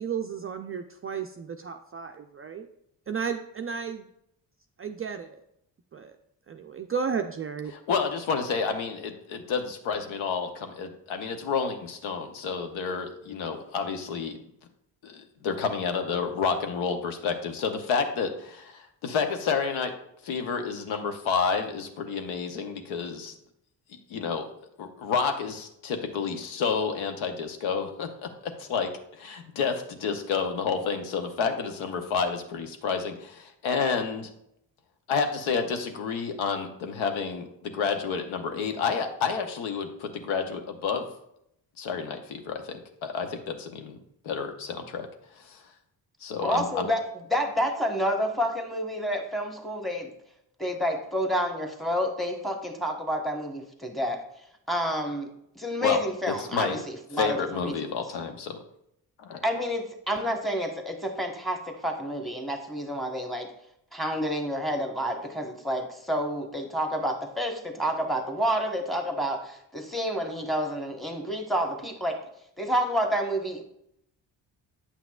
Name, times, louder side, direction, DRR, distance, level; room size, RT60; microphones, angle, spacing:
voice 1, 0.0-2.7 3.1-4.1 4.8-5.4 5.9-6.1 6.5-7.7, right 6 dB, 30° right, 5 dB, 0.4 m, -33 dB
voice 2, 7.7-14.4 15.0-19.9 20.2-23.3 24.1-24.5 24.8-34.3 35.1-41.1 41.8-44.0 44.2-45.1 45.4-45.6 46.2-46.9 55.8-56.0 56.3-56.8 57.2-58.6 59.2-59.4, left 5 dB, 75° left, 6 dB, 0.8 m, -30 dB
voice 3, 46.4-50.1 50.6-54.2 54.7-55.3 55.6-57.7 59.4-63.5 63.9-72.2 72.6-73.6, equal, ahead, 3 dB, 1.1 m, -29 dB
8.3 x 5.8 x 2.3 m, 0.77 s
supercardioid pair, 50°, 49 cm